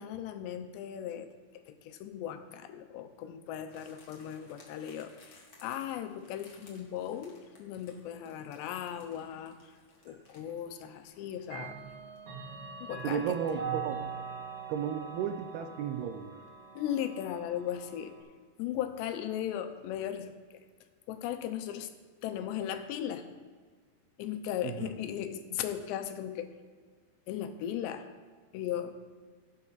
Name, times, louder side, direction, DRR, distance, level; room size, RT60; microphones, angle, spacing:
voice 1, 0.0-9.6 10.1-11.8 12.8-13.4 16.8-18.1 18.6-20.6 21.1-21.9 22.2-23.3 24.2-26.5 27.3-28.1 28.5-28.9, left 10 dB, 90° left, 9 dB, 3.0 m, -37 dB
sound 1, 3.7-12.3 12.6-12.7, left 2 dB, 50° left, 1.0 m, -60 dB
Clock, 10.1-10.2 11.4-18.2, right 6 dB, 65° right, 4.2 m, -42 dB
voice 2, 13.0-14.1 14.7-16.3 24.6-24.9, right 8 dB, 80° right, 8 dB, 2.4 m, -34 dB
16.5 x 8.6 x 4.1 m, 1.5 s
omnidirectional pair, 4.8 m